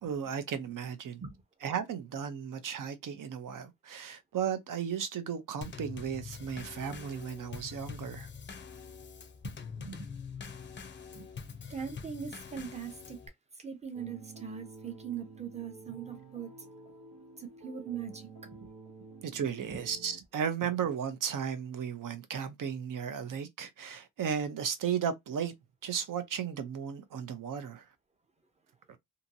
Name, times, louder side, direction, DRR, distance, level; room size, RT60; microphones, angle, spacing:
voice 1, 0.0-1.2 1.6-8.3 19.2-25.5 25.8-27.9, right 8 dB, 65° right, 0.7 m, -35 dB
Drum kit / Snare drum / Bass drum, 5.6-13.3, left 6 dB, 35° left, 0.5 m, -44 dB
voice 2, 9.4-10.1 11.1-11.3 11.7-13.2 13.6-16.5 17.4-18.7 19.6-19.8, right 7 dB, 20° right, 0.7 m, -41 dB
sound 1, 13.9-20.2, right 3 dB, 80° right, 1.1 m, -50 dB
2.8 x 2.7 x 2.6 m
wide cardioid pair, 160°, 35 cm